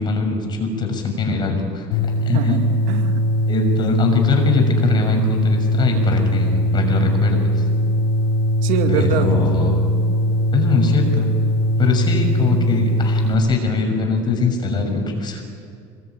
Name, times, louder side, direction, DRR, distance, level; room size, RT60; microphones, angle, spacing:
voice 1, 0.0-2.6 3.5-7.6 8.9-9.8 10.5-11.3 11.8-15.4, left 4 dB, 30° left, 4 dB, 6.4 m, -21 dB
sound 1, 1.9-13.3, equal, 80° left, 4.5 m, -20 dB
voice 2, 2.3-3.3 8.6-9.3, right 8 dB, 70° right, 6 dB, 2.3 m, -24 dB
26.5 x 20.5 x 9.2 m, 2.3 s
cardioid pair, 125°, 14 cm